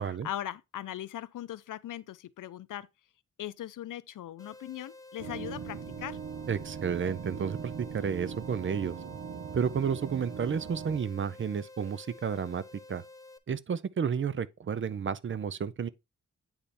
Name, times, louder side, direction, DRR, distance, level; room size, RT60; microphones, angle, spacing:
voice 1, 0.0-2.9 3.4-6.2, left 12 dB, 85° left, 0.5 m, -39 dB
sound 1, 4.4-13.4, left 2 dB, 10° left, 0.7 m, -51 dB
sound 2, 5.2-11.0, right 7 dB, 70° right, 0.8 m, -40 dB
voice 2, 6.5-9.0 9.5-12.6 12.9-13.0 13.5-15.9, right 7 dB, 40° right, 0.5 m, -31 dB
8.8 x 3.4 x 4.2 m
wide cardioid pair, 110°, 31 cm